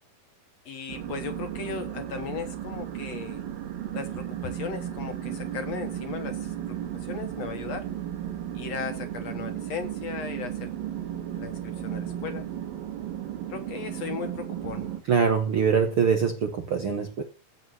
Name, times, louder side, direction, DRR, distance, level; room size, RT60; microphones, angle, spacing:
voice 1, 0.7-3.4 3.9-6.5 6.9-7.9 8.5-10.7 11.4-12.5 13.5-14.9, left 6 dB, 60° left, 2.2 m, -37 dB
sound 1, 0.9-15.0, right 11 dB, 85° right, 3.2 m, -35 dB
voice 2, 15.1-17.2, right 6 dB, 60° right, 1.5 m, -23 dB
16.0 x 5.4 x 7.9 m
omnidirectional pair, 3.9 m